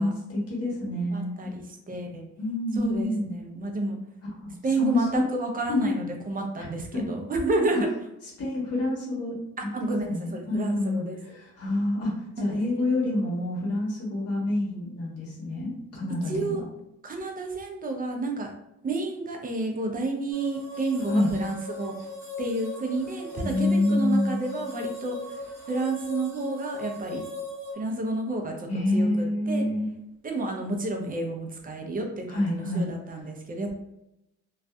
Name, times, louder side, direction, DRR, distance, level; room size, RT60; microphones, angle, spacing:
voice 1, 0.0-1.5 2.4-3.3 4.2-5.2 5.7-5.9 6.6-6.7 6.9-7.0 7.7-7.8 8.4-9.4 9.6-16.6 21.1-21.3 23.4-24.4 28.7-29.9 32.3-32.9, left 1 dB, 50° left, -4 dB, 1.2 m, -27 dB
voice 2, 1.1-2.2 2.7-4.0 4.6-7.9 9.6-11.2 16.3-16.6 17.0-18.5 18.8-21.9 22.4-25.2 25.7-27.2 27.8-29.6 30.2-33.7, right 2 dB, 30° right, 2 dB, 0.5 m, -30 dB
sound 1, 20.3-27.7, left 2 dB, 10° right, 1.3 m, -38 dB
2.5 x 2.3 x 2.2 m, 0.84 s
cardioid pair, 90°, 30 cm